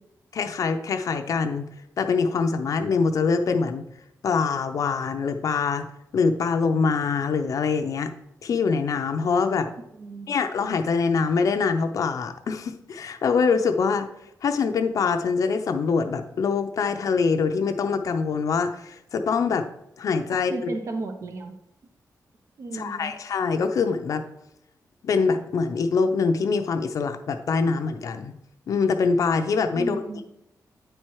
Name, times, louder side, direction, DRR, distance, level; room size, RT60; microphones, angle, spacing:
voice 1, 0.3-1.6 2.0-3.8 4.2-5.9 6.1-8.1 8.4-9.7 10.3-14.1 14.4-19.7 20.0-20.5 22.7-24.2 25.0-28.3 28.7-30.0, left 5 dB, 60° left, 6 dB, 0.6 m, -24 dB
voice 2, 9.9-10.3 20.3-21.5 22.6-23.1 29.7-30.2, right 3 dB, 50° right, 6 dB, 0.8 m, -34 dB
9.2 x 4.4 x 4.7 m, 0.81 s
wide cardioid pair, 165°, 6 cm